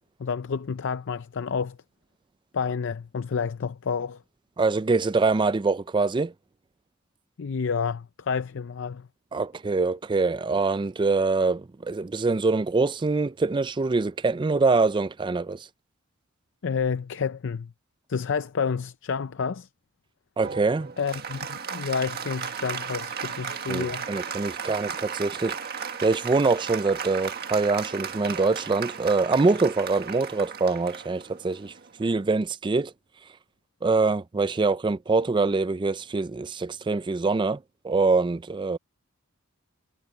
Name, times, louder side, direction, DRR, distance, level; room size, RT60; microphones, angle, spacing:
voice 1, 0.2-1.8 2.5-4.2 7.4-9.1 16.6-17.7 18.1-19.7 21.0-24.1, left 6 dB, 60° left, 0.5 m, -29 dB
voice 2, 4.6-6.3 9.3-15.7 20.4-20.9 23.7-25.6 26.0-31.7 32.0-32.9 33.8-37.6 37.8-38.8, right 3 dB, 20° right, 0.4 m, -24 dB
Applause, 20.4-32.3, right 6 dB, 50° right, 1.7 m, -35 dB
head